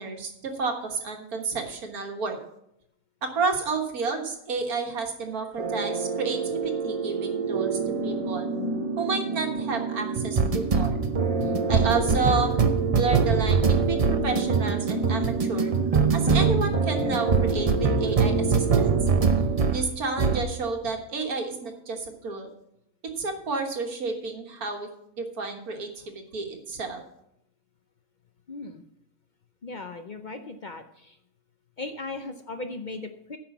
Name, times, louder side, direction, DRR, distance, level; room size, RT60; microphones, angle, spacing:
voice 1, 0.0-2.4 3.2-8.5 9.0-11.0 11.7-12.6 12.9-15.7 16.1-18.9 19.7-22.5 23.2-24.9 25.1-27.0, right 4 dB, 85° right, 4 dB, 1.9 m, -30 dB
sound 1, 5.6-19.9 20.2-20.5, right 5 dB, 40° right, 0.5 m, -24 dB
sound 2, 6.7-19.2, left 7 dB, 65° left, 1.0 m, -36 dB
voice 2, 28.5-28.8 29.6-30.8 31.8-33.4, left 3 dB, 50° left, 7 dB, 0.6 m, -37 dB
10.0 x 6.1 x 7.1 m, 0.78 s
omnidirectional pair, 1.5 m